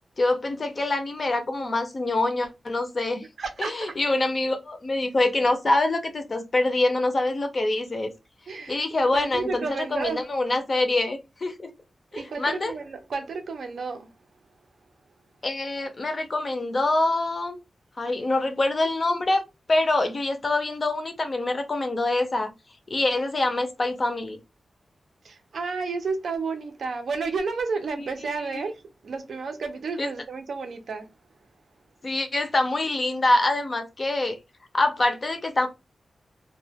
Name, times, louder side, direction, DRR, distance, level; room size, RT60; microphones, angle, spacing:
voice 1, 0.2-3.3 3.6-8.1 8.7-11.7 12.1-12.7 15.4-17.6 18.0-19.4 19.7-22.5 22.9-24.4 28.0-28.1 28.3-28.6 30.0-30.1 32.0-34.4 34.7-35.7, left 2 dB, 35° left, 0.4 m, -25 dB
voice 2, 3.4-4.0 8.5-8.9 9.1-10.3 12.1-14.1 25.2-31.1, right 4 dB, 75° right, 0.5 m, -31 dB
2.2 x 2.1 x 3.3 m
wide cardioid pair, 160°, 0 cm